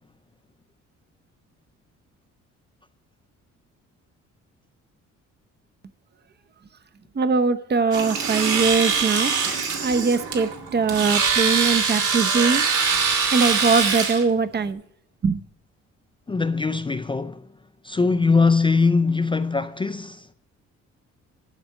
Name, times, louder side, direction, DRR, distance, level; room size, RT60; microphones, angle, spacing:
voice 1, 7.1-9.3 9.8-12.7 13.3-14.8 15.2-15.4, right 4 dB, 35° right, 0.8 m, -21 dB
Domestic sounds home sounds, 7.9-14.2, right 5 dB, 80° right, 2.2 m, -23 dB
voice 2, 16.3-17.5 17.8-20.3, left 4 dB, 15° left, 0.4 m, -21 dB
11.5 x 4.3 x 7.2 m
cardioid pair, 90°, 30 cm